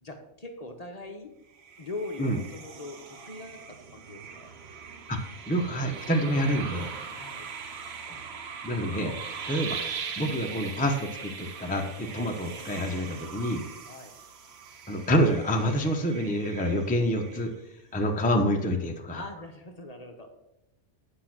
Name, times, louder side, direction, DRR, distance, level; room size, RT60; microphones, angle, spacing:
voice 1, 0.0-1.3 1.8-4.5 7.2-7.5 13.9-14.1 19.1-20.3, left 2 dB, 35° left, 4 dB, 0.9 m, -41 dB
sound 1, 1.5-17.8, right 6 dB, 65° right, 1.1 m, -41 dB
voice 2, 5.5-6.9 8.1-8.2 8.6-9.2 9.5-9.8 10.2-13.6 14.9-17.5 17.9-19.2, equal, 10° left, 2 dB, 0.7 m, -27 dB
8.4 x 5.3 x 6.0 m, 0.88 s
omnidirectional pair, 1.2 m